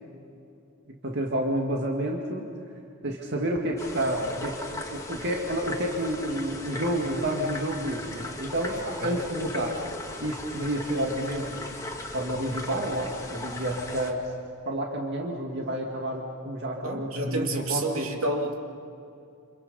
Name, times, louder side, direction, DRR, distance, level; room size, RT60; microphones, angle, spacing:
voice 1, 1.0-2.5 3.0-9.7 10.2-11.6 12.1-14.3 14.7-18.1, right 1 dB, 50° right, 0 dB, 2.1 m, -30 dB
sound 1, 3.8-14.1, left 2 dB, 15° left, 2.1 m, -38 dB
voice 2, 16.8-18.5, right 1 dB, 70° right, 1 dB, 2.8 m, -29 dB
29.5 x 27.5 x 5.5 m, 2.6 s
head